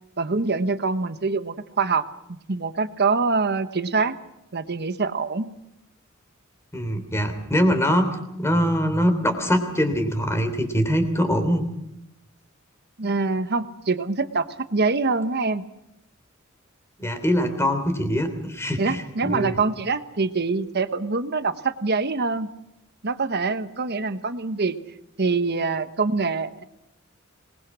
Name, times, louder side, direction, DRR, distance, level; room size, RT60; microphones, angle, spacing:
voice 1, 0.2-4.1 4.5-5.5 13.0-14.5 14.7-15.6 18.8-22.5 23.0-24.8 25.2-26.6, right 4 dB, 50° right, 11 dB, 1.1 m, -25 dB
voice 2, 6.7-11.6 17.0-19.6, equal, 15° left, 8 dB, 3.3 m, -23 dB
25.5 x 20.5 x 6.2 m, 0.84 s
head